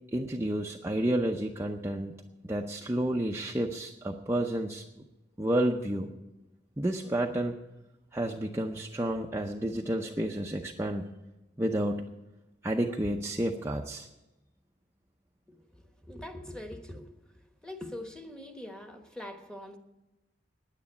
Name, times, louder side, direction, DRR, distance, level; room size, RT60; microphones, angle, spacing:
voice 1, 0.1-2.1 2.4-4.9 5.4-6.1 6.8-7.5 8.1-11.1 11.6-12.1 12.6-14.1, right 1 dB, 15° right, 1 dB, 0.6 m, -30 dB
voice 2, 15.5-17.1 17.6-19.8, left 1 dB, 5° left, 5 dB, 1.2 m, -43 dB
9.6 x 9.5 x 9.8 m, 1.0 s
head